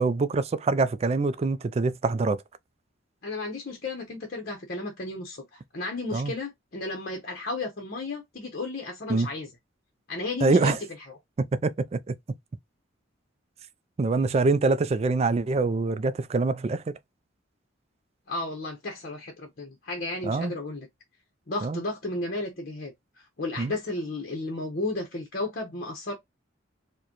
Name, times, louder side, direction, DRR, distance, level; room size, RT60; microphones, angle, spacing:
voice 1, 0.0-2.4 6.1-6.3 9.1-9.3 10.4-10.8 11.4-12.2 14.0-16.8 20.2-20.5 21.6-21.8 23.6-23.7, right 3 dB, 30° right, 0.3 m, -24 dB
voice 2, 3.2-9.5 10.1-10.8 18.3-20.9 21.5-22.9 23.2-26.1, left 2 dB, 50° left, 0.8 m, -33 dB
4.7 x 2.2 x 2.9 m
head